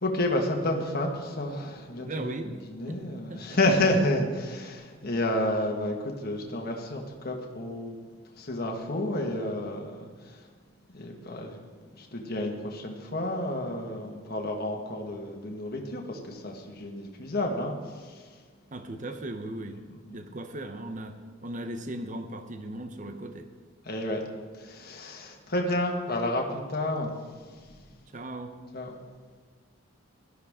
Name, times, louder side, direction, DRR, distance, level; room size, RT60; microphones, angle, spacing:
voice 1, 0.0-2.1 2.7-8.0 8.4-10.4 10.9-11.6 11.9-18.2 20.1-20.2 23.8-24.2 24.6-27.1 28.7-28.9, left 1 dB, 45° left, 1 dB, 1.6 m, -30 dB
voice 2, 2.0-2.6 2.9-3.0 3.3-3.6 18.7-19.8 20.1-23.5 28.1-28.5, right 1 dB, 35° right, 7 dB, 0.8 m, -37 dB
16.5 x 12.5 x 3.7 m, 1.5 s
head